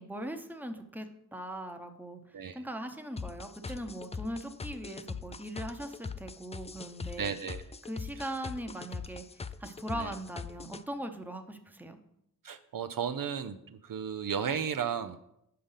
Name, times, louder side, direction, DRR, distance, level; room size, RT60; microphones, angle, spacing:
voice 1, 0.0-2.2 2.5-7.4 7.9-12.0, right 1 dB, 5° right, 6 dB, 0.9 m, -40 dB
sound 1, 3.2-10.8, left 5 dB, 20° left, 0.3 m, -41 dB
voice 2, 7.2-7.6 9.9-10.1 12.4-15.2, right 7 dB, 60° right, 10 dB, 0.5 m, -34 dB
6.7 x 5.1 x 5.6 m, 0.77 s
cardioid pair, 55°, 38 cm